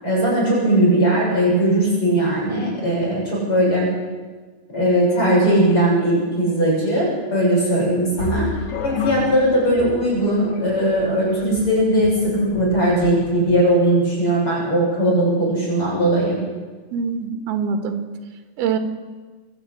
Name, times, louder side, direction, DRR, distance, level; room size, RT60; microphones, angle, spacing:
voice 1, 0.0-3.9 4.7-8.5 8.8-16.4, right 1 dB, 35° left, -4 dB, 8.6 m, -19 dB
sound 1, 8.2-13.7, left 4 dB, 55° left, 2.7 m, -31 dB
voice 2, 16.9-18.0 18.6-18.8, right 6 dB, 80° right, 5 dB, 3.6 m, -23 dB
26.5 x 12.0 x 8.8 m, 1.4 s
omnidirectional pair, 4.4 m